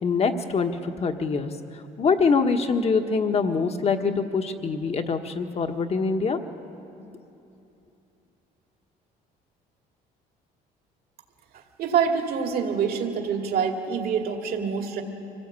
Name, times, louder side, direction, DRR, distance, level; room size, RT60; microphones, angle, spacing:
voice 1, 0.0-1.5 2.0-6.4, left 4 dB, 40° left, 6 dB, 1.5 m, -24 dB
voice 2, 11.5-15.0, right 6 dB, 65° right, 3 dB, 2.3 m, -26 dB
25.0 x 17.5 x 8.4 m, 2.8 s
cardioid pair, 110°, 17 cm